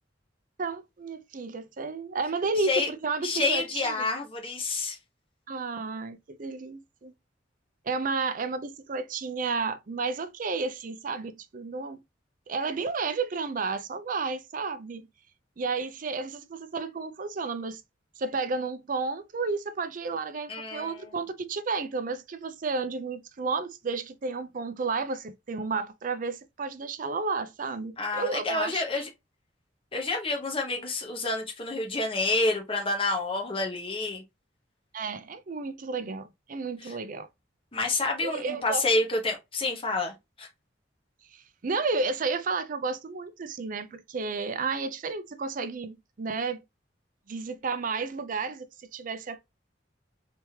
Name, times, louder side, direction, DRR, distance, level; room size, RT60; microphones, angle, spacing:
voice 1, 0.6-4.1 5.5-7.1 7.8-12.0 12.5-15.1 15.6-17.8 18.2-29.0 34.9-37.3 38.2-38.8 41.3-46.6 47.3-48.7 48.9-49.4, right 4 dB, 45° right, 0.5 m, -32 dB
voice 2, 3.2-5.0 20.5-21.1 28.0-29.1 29.9-34.2 36.8-36.9 37.7-40.5, left 3 dB, 30° left, 1.1 m, -28 dB
3.4 x 3.1 x 2.8 m
head